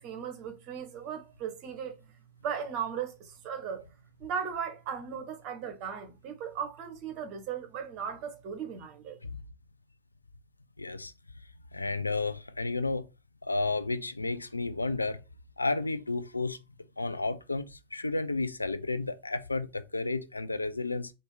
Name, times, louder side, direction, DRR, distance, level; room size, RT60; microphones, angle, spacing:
voice 1, 0.0-2.1 2.4-3.9 4.2-9.2, right 7 dB, 40° right, 1.0 m, -37 dB
voice 2, 10.8-11.1 11.7-13.0 13.4-15.2 15.6-16.6 17.0-21.1, left 3 dB, 80° left, 0.4 m, -32 dB
4.5 x 2.6 x 3.0 m
figure-of-eight pair, 90°, 0 cm